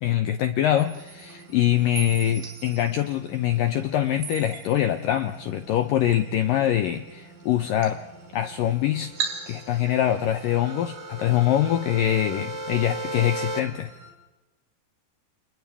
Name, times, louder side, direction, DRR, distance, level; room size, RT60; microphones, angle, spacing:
voice 1, 0.0-8.0 8.3-9.1 9.5-13.9, left 11 dB, 80° left, 8 dB, 2.0 m, -24 dB
sound 1, 0.8-14.1, right 6 dB, 80° right, 6.5 m, -41 dB
sound 2, 8.7-13.6, right 2 dB, 40° right, 1.0 m, -37 dB
29.5 x 29.0 x 3.5 m, 1.1 s
omnidirectional pair, 5.1 m